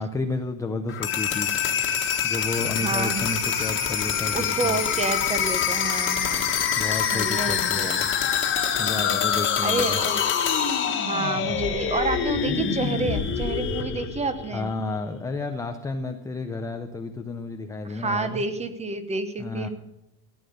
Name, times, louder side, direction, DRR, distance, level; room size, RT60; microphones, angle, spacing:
voice 1, 0.0-1.6 2.2-4.8 6.8-8.1 8.8-10.0 14.5-18.4 19.4-19.7, left 3 dB, 10° left, 5 dB, 0.4 m, -31 dB
sound 1, 0.9-14.7, left 7 dB, 25° left, 1.6 m, -25 dB
voice 2, 2.8-3.3 4.3-6.4 7.1-8.0 9.0-9.2 9.6-10.3 10.9-14.7 17.8-19.7, right 3 dB, 15° right, 11 dB, 0.9 m, -29 dB
15.0 x 8.7 x 6.5 m, 0.88 s
cardioid pair, 165°, 44 cm